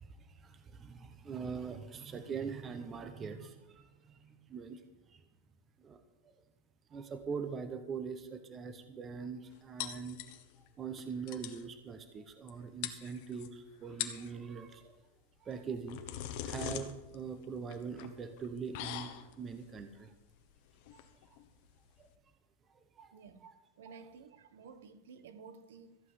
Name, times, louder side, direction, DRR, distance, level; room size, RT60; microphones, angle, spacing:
voice 1, 0.0-4.8 5.1-5.2 5.8-6.0 6.9-10.2 10.8-15.0 15.4-16.0 16.4-20.1 20.9-21.0 21.3-21.4 22.0-22.1 23.0-23.1 23.4-23.5 23.9-24.0, right 6 dB, 15° right, 9 dB, 0.8 m, -42 dB
sound 1, 9.8-10.7 11.0-11.1 11.3-11.6 12.5-12.6 12.8-13.5 13.9-14.3 15.5-22.1, left 11 dB, 45° left, 1.2 m, -43 dB
voice 2, 23.1-23.5 23.8-26.0, right 5 dB, 75° right, 11 dB, 1.2 m, -53 dB
14.5 x 5.6 x 9.7 m, 1.0 s
supercardioid pair, 175°, 0 cm